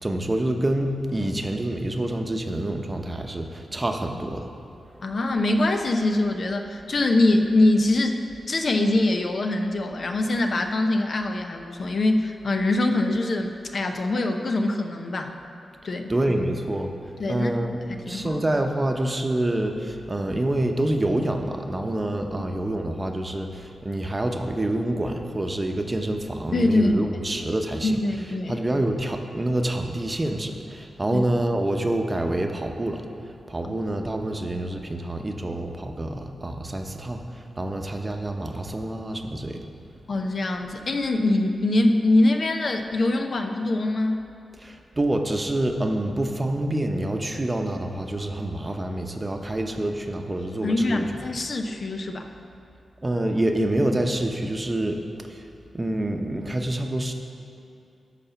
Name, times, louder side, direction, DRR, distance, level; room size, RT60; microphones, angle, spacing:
voice 1, 0.0-4.5 16.1-16.9 17.3-28.0 28.5-33.0 33.5-39.6 44.6-51.0 53.0-55.0 55.3-55.4 55.7-57.1, right 1 dB, 30° right, 4 dB, 0.8 m, -27 dB
voice 2, 5.0-8.2 8.5-15.3 15.8-16.1 17.2-17.5 18.1-18.4 26.5-27.0 27.8-28.6 31.1-31.2 33.6-33.7 40.1-44.2 50.6-52.3, left 2 dB, 60° left, 5 dB, 0.7 m, -23 dB
11.0 x 4.1 x 7.0 m, 2.7 s
cardioid pair, 60°, 0 cm